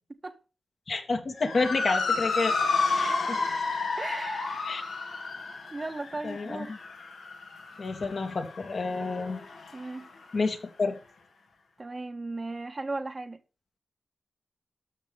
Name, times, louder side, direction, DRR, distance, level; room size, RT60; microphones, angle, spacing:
voice 1, 0.9-2.6 2.9-3.4 4.7-4.8 6.2-6.8 7.8-9.4 10.3-11.0, left 3 dB, 60° left, 2.4 m, -29 dB
Motor vehicle (road) / Siren, 1.4-10.0, left 4 dB, 80° left, 2.8 m, -31 dB
voice 2, 4.0-4.7 5.7-6.7 9.7-10.1 11.8-13.4, right 2 dB, 35° right, 1.6 m, -36 dB
12.5 x 6.1 x 5.3 m
cardioid pair, 45°, 0 cm